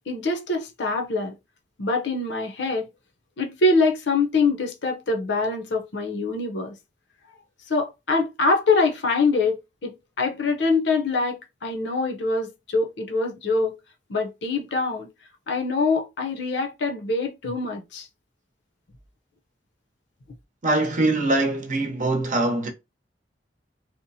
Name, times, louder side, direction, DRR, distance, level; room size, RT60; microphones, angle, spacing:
voice 1, 0.0-1.3 1.8-2.9 3.4-6.7 7.7-13.8 14.1-15.1 15.5-18.1, left 3 dB, 70° left, 0.7 m, -24 dB
voice 2, 20.6-22.7, right 2 dB, 45° right, 0.7 m, -23 dB
2.8 x 2.1 x 2.7 m
head